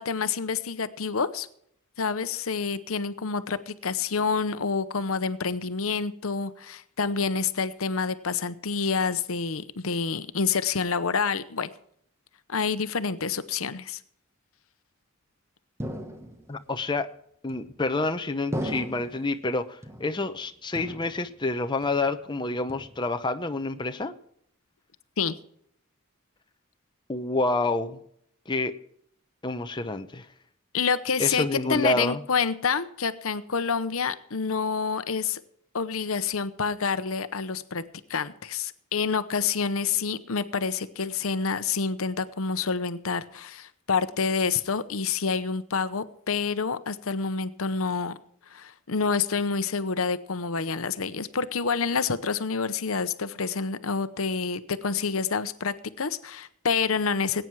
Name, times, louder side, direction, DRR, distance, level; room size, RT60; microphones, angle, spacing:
voice 1, 0.0-1.5 2.0-11.7 12.5-14.0 25.2-25.4 30.7-35.4 35.7-37.8 38.1-48.2 48.5-57.4, left 5 dB, 70° left, 13 dB, 0.9 m, -28 dB
sound 1, 15.8-16.6 17.5-18.0 18.5-19.3 19.8-20.4 20.7-21.5 21.8-22.3 22.7-23.3, equal, 10° right, 1.2 m, -37 dB
voice 2, 16.5-17.1 17.4-24.1 27.1-28.0 28.5-28.7 29.4-30.3 31.2-32.2, left 2 dB, 20° left, 7 dB, 0.7 m, -28 dB
20.0 x 9.1 x 4.7 m, 0.68 s
head